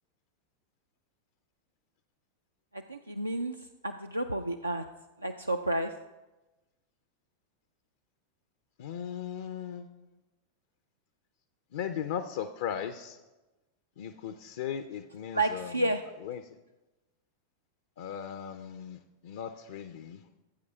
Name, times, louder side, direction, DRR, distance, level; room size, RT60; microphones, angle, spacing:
voice 1, 2.7-3.6 3.8-4.8 5.2-5.9 15.3-16.0, right 1 dB, 85° right, 5 dB, 0.3 m, -30 dB
voice 2, 8.8-9.9 11.7-13.2 14.0-15.7 16.2-16.4 18.0-20.2, left 8 dB, 55° left, 8 dB, 0.4 m, -37 dB
16.5 x 8.4 x 2.3 m, 1.1 s
figure-of-eight pair, 90°, 0 cm